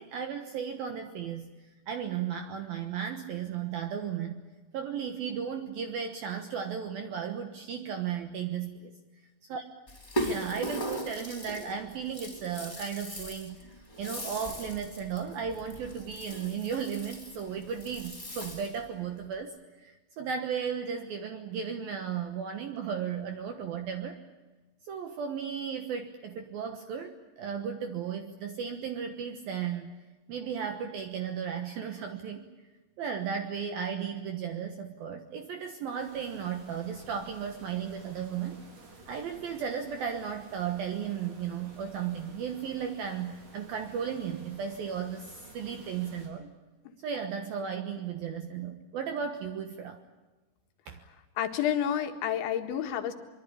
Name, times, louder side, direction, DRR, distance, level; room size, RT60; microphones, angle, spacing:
voice 1, 0.0-1.5 1.9-4.4 4.7-8.9 9.5-9.6 10.2-24.2 24.8-29.9 30.3-32.5 33.0-38.6 39.1-46.5 47.0-50.0 50.9-51.0, right 7 dB, 65° right, 6 dB, 2.7 m, -35 dB
Rattle (instrument), 9.9-18.9, right 1 dB, 10° left, 4.5 m, -39 dB
sound 1, 36.0-46.3, right 3 dB, 40° right, 5.7 m, -53 dB
voice 2, 51.4-53.1, left 9 dB, 75° left, 6 dB, 4.1 m, -29 dB
24.5 x 23.5 x 8.6 m, 1.2 s
omnidirectional pair, 5.4 m